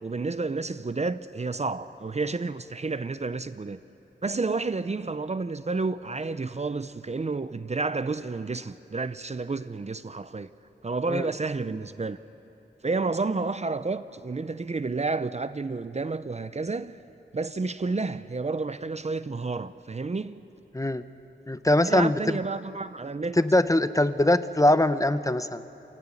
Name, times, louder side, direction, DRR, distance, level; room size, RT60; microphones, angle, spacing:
voice 1, 0.0-3.8 4.2-10.5 10.8-12.2 12.8-17.0 17.3-20.4 21.8-23.4, right 3 dB, 35° right, 0.6 m, -30 dB
voice 2, 21.5-22.4 23.4-25.6, left 1 dB, 15° left, 0.7 m, -22 dB
28.0 x 15.5 x 9.7 m
wide cardioid pair, 85°, 19 cm